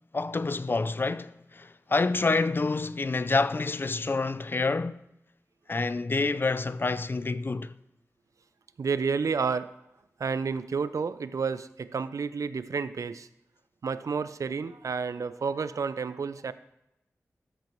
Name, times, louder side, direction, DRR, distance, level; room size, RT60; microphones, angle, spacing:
voice 1, 0.1-5.0 5.7-7.7, left 3 dB, 40° left, 0.3 m, -28 dB
voice 2, 8.8-9.7 10.2-13.3 13.8-16.5, right 5 dB, 75° right, 0.4 m, -30 dB
13.5 x 6.4 x 3.0 m
wide cardioid pair, 70°, 6 cm